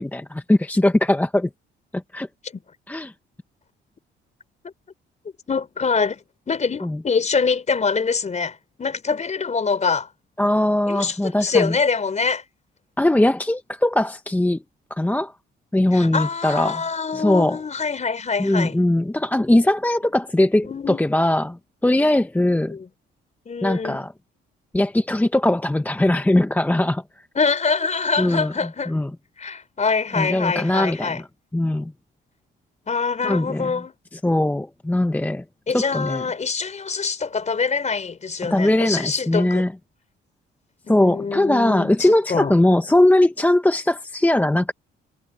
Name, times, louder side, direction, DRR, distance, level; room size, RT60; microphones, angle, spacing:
voice 1, 0.0-1.5 1.9-2.3 2.9-3.1 6.8-7.0 10.4-11.8 13.0-14.6 14.9-15.3 15.7-16.8 17.1-17.6 18.4-22.8 23.6-24.1 24.7-27.0 28.2-28.5 28.9-29.1 30.1-31.2 31.5-31.9 33.2-33.7 34.2-35.4 35.7-36.3 38.4-39.7 40.9-44.7, left 1 dB, 10° left, 0.9 m, -20 dB
voice 2, 5.5-10.1 10.9-12.4 15.9-18.8 20.6-21.0 22.7-22.9 23.5-24.0 27.3-29.0 29.4-31.2 32.9-33.9 35.7-39.6 40.8-42.5, left 5 dB, 35° left, 4.5 m, -24 dB
cardioid pair, 90°, 20 cm